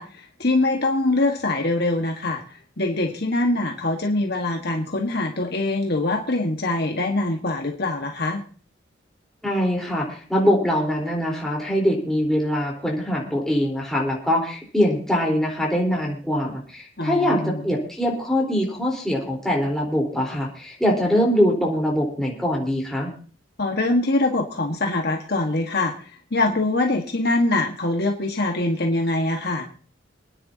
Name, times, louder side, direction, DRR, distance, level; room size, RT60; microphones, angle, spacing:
voice 1, 0.0-2.4 2.8-8.4 17.0-17.6 23.6-25.9 26.3-29.7, left 2 dB, 55° left, 2 dB, 1.7 m, -23 dB
voice 2, 9.4-23.1, equal, ahead, -2 dB, 4.2 m, -23 dB
27.0 x 10.0 x 2.9 m, 0.40 s
head